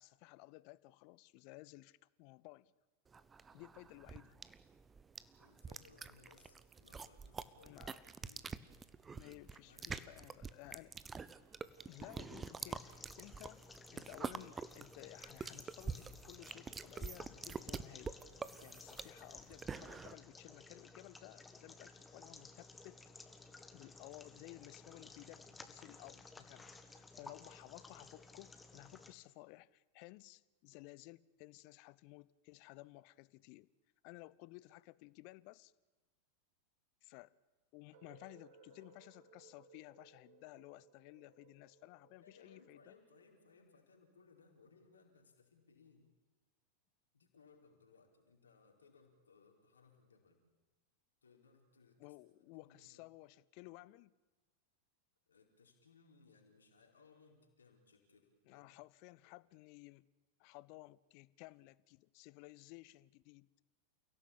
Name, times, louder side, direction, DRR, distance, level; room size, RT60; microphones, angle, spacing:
voice 1, 0.0-2.7 3.5-4.4 7.6-8.0 9.1-10.9 11.9-18.2 18.6-23.0 23.7-33.7 34.0-35.7 37.0-37.3 37.7-43.0 52.0-54.1 58.5-60.0 60.4-63.5, left 21 dB, 45° left, 0.7 m, -56 dB
sound 1, 3.1-20.1, right 5 dB, 15° right, 1.0 m, -46 dB
voice 2, 5.4-7.9 8.2-8.5 9.2-9.3 9.7-10.4 42.2-46.1 47.1-50.4 51.2-52.2 52.4-53.2 55.3-58.7, left 4 dB, 70° left, 4.5 m, -66 dB
sound 2, 11.7-29.1, left 3 dB, 10° left, 2.0 m, -57 dB
sound 3, 37.9-43.8, right 3 dB, 55° right, 3.1 m, -64 dB
29.5 x 16.5 x 8.7 m
figure-of-eight pair, 90°, 0 cm